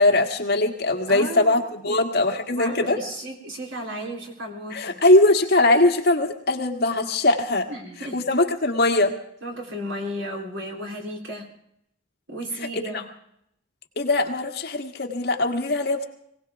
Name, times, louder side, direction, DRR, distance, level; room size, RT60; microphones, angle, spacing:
voice 1, 0.0-3.0 4.7-7.7 8.1-9.1 12.7-12.8 14.0-16.0, left 2 dB, 50° left, 3 dB, 1.7 m, -21 dB
voice 2, 1.1-2.0 2.5-5.0 7.7-8.2 9.4-11.5 12.3-13.1, equal, 70° right, 1 dB, 3.6 m, -34 dB
22.5 x 17.5 x 3.5 m, 0.73 s
head